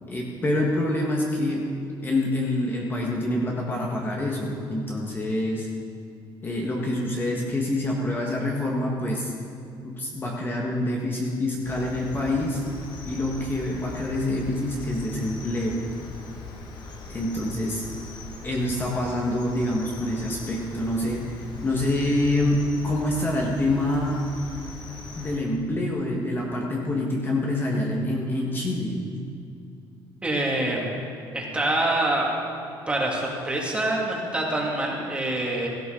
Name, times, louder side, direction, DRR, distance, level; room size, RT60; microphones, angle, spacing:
voice 1, 0.0-1.7 2.0-5.7 6.4-9.3 9.8-12.6 13.0-15.9 17.1-17.8 18.4-24.2 25.1-29.0, left 1 dB, 25° left, -2 dB, 1.6 m, -26 dB
Cricket, 11.6-25.4, left 3 dB, 55° left, 1.9 m, -40 dB
voice 2, 30.2-30.9 31.3-32.3 32.9-35.7, right 1 dB, 10° right, -2 dB, 2.5 m, -25 dB
16.5 x 13.5 x 3.9 m, 2.5 s
cardioid pair, 125°, 9 cm